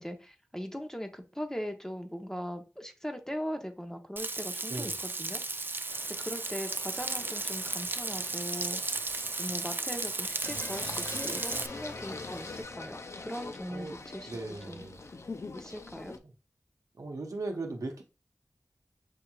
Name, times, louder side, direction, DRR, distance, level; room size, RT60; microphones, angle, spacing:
voice 1, 0.0-5.4 6.2-8.8 9.4-14.3 14.7-14.9 15.5-16.2, equal, 10° left, 5 dB, 0.9 m, -40 dB
Frying (food), 4.2-11.7, right 3 dB, 35° right, 0.3 m, -35 dB
sound 1, 5.9-12.6, left 1 dB, 85° left, 2.0 m, -50 dB
Singing, 10.4-16.2, left 3 dB, 55° left, 0.5 m, -42 dB
voice 2, 14.3-15.0 17.0-18.0, right 2 dB, 75° right, 3 dB, 0.8 m, -37 dB
6.6 x 2.8 x 2.3 m, 0.31 s
cardioid pair, 40°, 6 cm